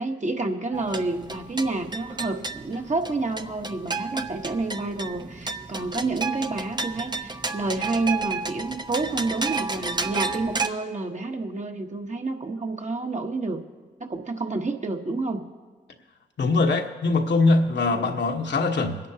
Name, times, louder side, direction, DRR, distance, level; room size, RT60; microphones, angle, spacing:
voice 1, 0.0-13.6 14.0-15.4 17.9-18.2, right 3 dB, 35° right, 4 dB, 1.3 m, -29 dB
sound 1, 0.7-10.7, right 3 dB, 20° right, 0.8 m, -32 dB
voice 2, 16.4-19.0, left 3 dB, 65° left, 3 dB, 1.3 m, -22 dB
23.0 x 11.0 x 2.9 m, 1.4 s
supercardioid pair, 40°, 20 cm